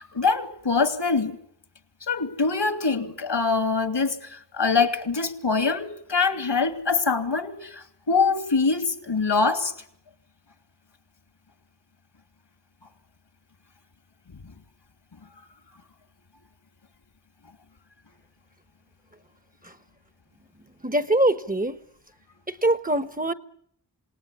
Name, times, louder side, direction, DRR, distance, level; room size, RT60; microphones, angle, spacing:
voice 1, 0.0-1.4 2.1-9.7, left 4 dB, 80° left, 2.8 m, -24 dB
voice 2, 20.8-21.8 22.5-23.3, right 1 dB, 20° right, 1.3 m, -23 dB
27.5 x 18.5 x 9.9 m
wide cardioid pair, 45°, 42 cm